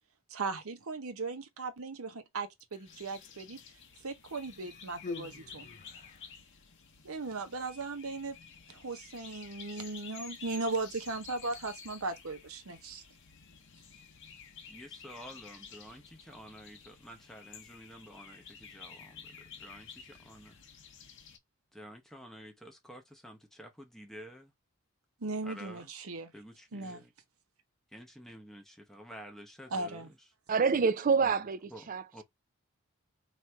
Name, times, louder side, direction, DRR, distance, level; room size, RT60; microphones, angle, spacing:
voice 1, 0.3-3.6 4.0-5.7 7.0-8.4 8.7-13.0 25.2-26.3 26.7-27.0 29.7-30.1, right 3 dB, 80° right, 0.8 m, -37 dB
Human voice, 2.6-3.5 4.4-6.3 7.2-7.4, left 3 dB, 35° left, 0.3 m, -46 dB
sound 1, 2.8-21.4, left 6 dB, 55° left, 0.8 m, -52 dB
voice 2, 14.7-20.6 21.7-24.5 25.4-25.9 26.3-27.1 27.9-30.2 31.2-31.4 31.7-32.2, equal, ahead, 0.8 m, -50 dB
voice 3, 30.5-32.0, right 5 dB, 40° right, 0.4 m, -27 dB
3.1 x 2.5 x 4.4 m
head